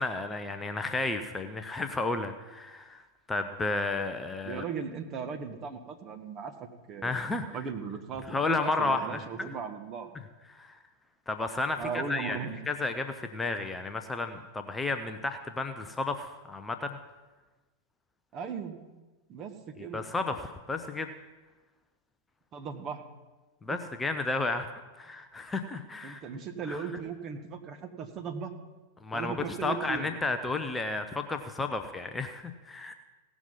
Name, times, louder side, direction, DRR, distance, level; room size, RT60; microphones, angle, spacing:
voice 1, 0.0-3.0 3.3-4.6 7.0-7.5 8.3-9.5 10.5-10.8 11.3-12.4 12.7-17.0 19.8-21.1 23.6-24.7 25.0-26.2 26.7-26.8 29.0-32.9, left 3 dB, 10° left, 7 dB, 0.7 m, -32 dB
voice 2, 4.4-7.2 7.5-10.1 11.8-12.6 18.3-18.8 19.3-20.0 22.5-23.0 23.7-23.8 26.0-28.5 29.1-30.1, right 6 dB, 30° right, 5 dB, 1.3 m, -37 dB
17.0 x 6.1 x 5.5 m, 1.2 s
figure-of-eight pair, 90°, 0 cm